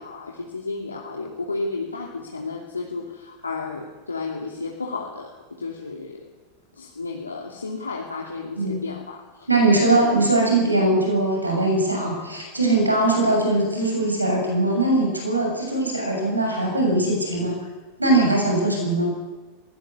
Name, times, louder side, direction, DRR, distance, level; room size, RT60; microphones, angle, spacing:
voice 1, 0.0-6.3 6.7-9.5 10.0-10.1, left 3 dB, 75° left, 0 dB, 2.6 m, -32 dB
voice 2, 9.5-17.6 18.0-19.2, right 2 dB, 85° right, 1 dB, 7.2 m, -21 dB
20.5 x 18.0 x 9.7 m, 1.3 s
figure-of-eight pair, 90°, 0 cm